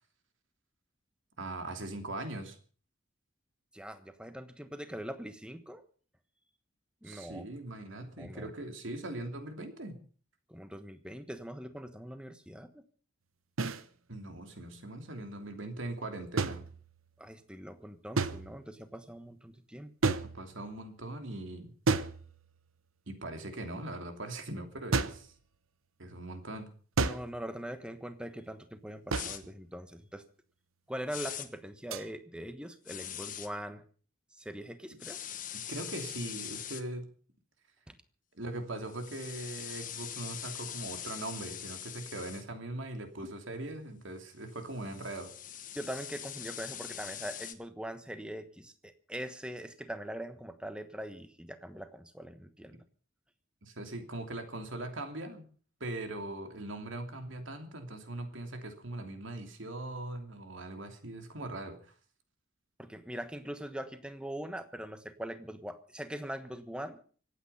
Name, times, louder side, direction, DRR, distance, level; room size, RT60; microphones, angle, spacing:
voice 1, 1.4-2.6 7.0-10.0 14.1-16.7 20.2-21.7 23.1-25.3 26.0-26.7 35.7-37.1 38.3-45.3 53.6-55.5 55.8-61.9, right 2 dB, 70° right, 6 dB, 2.9 m, -40 dB
voice 2, 3.7-5.8 7.0-7.5 8.2-8.5 10.5-12.9 17.2-19.9 27.0-30.2 30.9-33.8 34.3-35.2 37.9-38.0 45.7-52.9 62.8-67.0, equal, 5° right, 10 dB, 1.2 m, -42 dB
sound 1, 13.6-13.8 16.4-17.2 18.2-18.8 20.0-20.8 21.9-22.7 24.9-25.3 27.0-27.5 29.1-29.5 31.9-32.1, right 3 dB, 85° right, 1.0 m, -32 dB
sound 2, 29.1-29.4 31.1-31.5 32.9-33.5 35.0-36.8 38.9-42.4 44.5-47.5, left 10 dB, 40° left, 1.3 m, -42 dB
25.0 x 9.1 x 5.6 m, 0.43 s
head